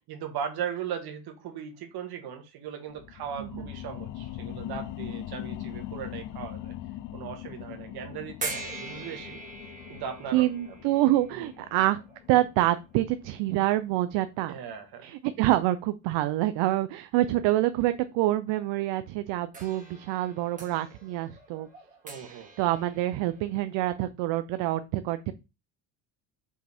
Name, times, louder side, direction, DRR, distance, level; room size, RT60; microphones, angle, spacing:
voice 1, 0.1-6.7 7.1-9.4 9.9-10.5 11.3-11.5 14.5-15.1 22.0-22.5, right 8 dB, 55° right, 6 dB, 1.8 m, -38 dB
sound 1, 2.9-14.0 14.5-14.6, left 13 dB, 45° left, 0.4 m, -41 dB
sound 2, 8.4-13.5 14.3-14.4 19.5-23.8, right 3 dB, 15° right, 1.9 m, -43 dB
voice 2, 10.3-12.0 12.3-14.5 15.0-21.7 22.3-25.3, right 15 dB, 70° right, 11 dB, 0.7 m, -26 dB
5.9 x 5.0 x 3.5 m, 0.27 s
cardioid pair, 140°, 45 cm